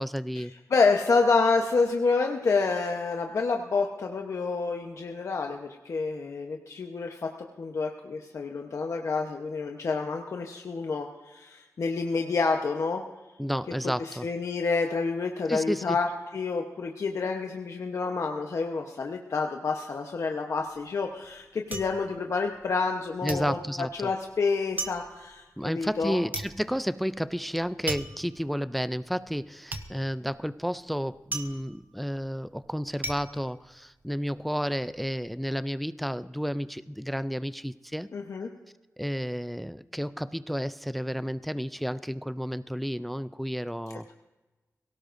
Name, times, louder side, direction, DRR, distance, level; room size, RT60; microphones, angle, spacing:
voice 1, 0.0-0.5 13.4-14.3 15.5-16.0 23.2-24.1 25.6-38.1 39.0-44.1, equal, ahead, 14 dB, 0.4 m, -31 dB
voice 2, 0.7-7.3 7.6-13.0 14.0-23.6 24.0-26.2 38.1-38.5, left 4 dB, 65° left, 2 dB, 1.0 m, -28 dB
sound 1, 20.6-23.0 23.3-34.4 34.7-35.3, right 2 dB, 35° right, 0.9 m, -39 dB
23.0 x 17.5 x 2.6 m, 1.2 s
wide cardioid pair, 120°, 5 cm